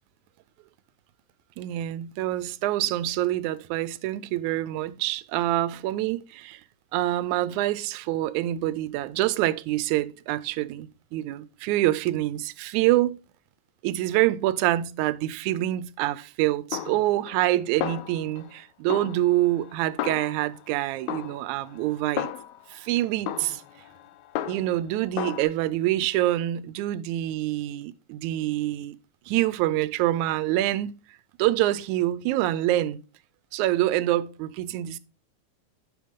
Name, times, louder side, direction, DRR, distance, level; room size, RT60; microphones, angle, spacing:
voice 1, 1.6-6.6 6.9-13.2 13.8-22.3 22.7-23.6 24.5-29.0 29.3-31.0 31.4-33.0 33.5-35.0, right 15 dB, 85° right, 2.0 m, -26 dB
Snare drum, 16.7-17.5 17.8-18.6 18.9-20.7 21.1-22.8 23.3-24.9 25.2-25.4, left 11 dB, 85° left, 2.0 m, -34 dB
10.5 x 5.9 x 3.6 m
omnidirectional pair, 3.3 m